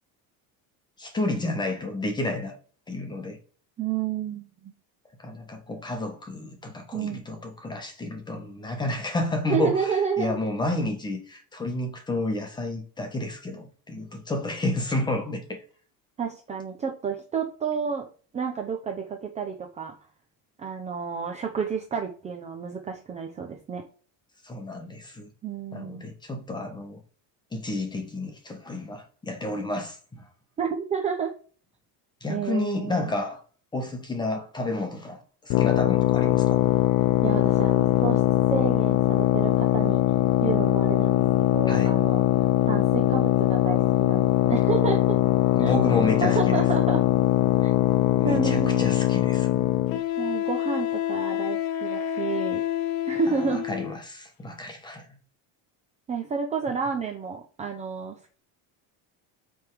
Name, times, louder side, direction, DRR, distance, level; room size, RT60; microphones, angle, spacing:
voice 1, 1.0-2.5 2.9-3.4 5.2-15.6 24.4-25.3 25.7-27.0 27.5-30.3 32.2-33.4 33.7-36.7 41.7-42.0 45.5-46.6 48.1-49.7 53.3-55.2, left 2 dB, 10° left, 1.1 m, -31 dB
voice 2, 3.8-4.7 6.9-7.2 9.5-10.3 16.2-18.1 18.3-19.9 20.6-23.8 25.4-26.0 30.6-31.3 32.3-33.1 37.2-38.2 38.5-40.0 40.4-41.2 41.5-42.2 42.6-45.2 45.6-45.7 46.2-47.0 47.6-47.7 48.2-48.9 50.2-52.6 53.1-53.6 56.1-58.1, right 6 dB, 15° right, 0.6 m, -30 dB
sound 1, 35.5-50.0, left 13 dB, 45° left, 0.5 m, -21 dB
Wind instrument woodwind instrument, 48.6-48.7 49.9-54.0, left 12 dB, 75° left, 1.0 m, -29 dB
8.3 x 3.6 x 4.6 m
cardioid pair, 180°, 42 cm